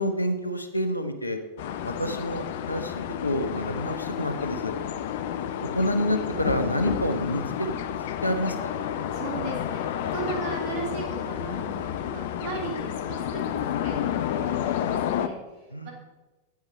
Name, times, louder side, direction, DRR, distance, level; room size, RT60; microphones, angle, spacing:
voice 1, 0.0-1.4 1.8-4.7 5.7-7.7 8.2-8.7 15.7-15.9, left 1 dB, 85° left, 8 dB, 0.9 m, -28 dB
sound 1, 1.6-15.3, left 10 dB, 55° left, 0.5 m, -30 dB
voice 2, 9.1-9.8 10.1-15.9, right 3 dB, 50° right, -1 dB, 3.2 m, -36 dB
9.7 x 8.8 x 4.4 m, 1.2 s
figure-of-eight pair, 90°, 0 cm